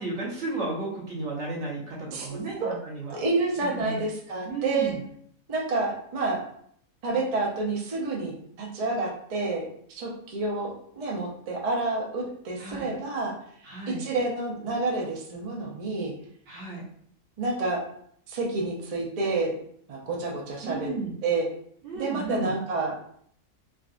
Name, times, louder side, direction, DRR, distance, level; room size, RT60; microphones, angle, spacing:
voice 1, 0.0-3.2 3.8-4.0 4.5-5.0 12.6-12.9 13.6-14.0 16.5-16.9 20.6-21.1 21.8-22.5, right 3 dB, 65° right, -3 dB, 1.1 m, -33 dB
voice 2, 2.1-2.7 3.1-5.0 5.5-6.4 7.0-13.3 14.0-16.1 17.4-17.8 18.3-19.5 19.9-20.9 21.2-21.5 21.9-23.1, right 3 dB, 45° right, -3 dB, 0.5 m, -29 dB
3.6 x 2.3 x 2.4 m, 0.64 s
omnidirectional pair, 1.4 m